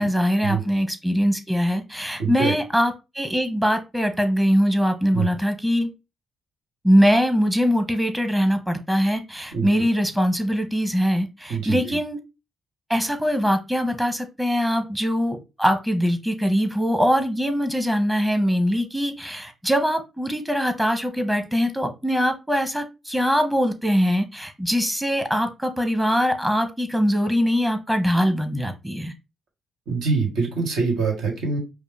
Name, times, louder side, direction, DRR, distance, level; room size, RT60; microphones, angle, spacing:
voice 1, 0.0-5.9 6.8-12.2 12.9-29.1, equal, 10° right, 7 dB, 0.9 m, -22 dB
voice 2, 2.2-2.5 5.1-5.2 9.5-9.7 11.5-12.0 29.9-31.6, right 4 dB, 70° right, 0 dB, 1.6 m, -24 dB
5.1 x 2.1 x 3.3 m, 0.26 s
hypercardioid pair, 45°, 0 cm